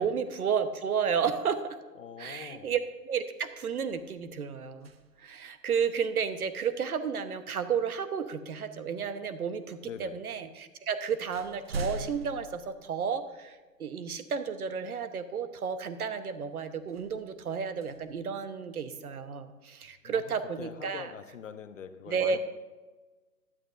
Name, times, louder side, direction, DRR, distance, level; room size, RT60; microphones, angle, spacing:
voice 1, 0.0-1.8 2.2-2.8 3.0-4.9 5.2-21.1 22.1-22.4, right 6 dB, 65° right, 11 dB, 1.1 m, -32 dB
voice 2, 2.0-2.7 9.9-10.2 20.0-20.2 20.6-22.4, left 7 dB, 50° left, 9 dB, 0.9 m, -43 dB
sound 1, 3.0-3.1 3.4-5.5 7.6-7.8 8.6-9.3 10.2-10.3 10.7-13.6 14.1-14.2 16.8-19.0, right 2 dB, 40° right, 0.4 m, -43 dB
14.5 x 11.0 x 2.6 m, 1.3 s
hypercardioid pair, 150°, 48 cm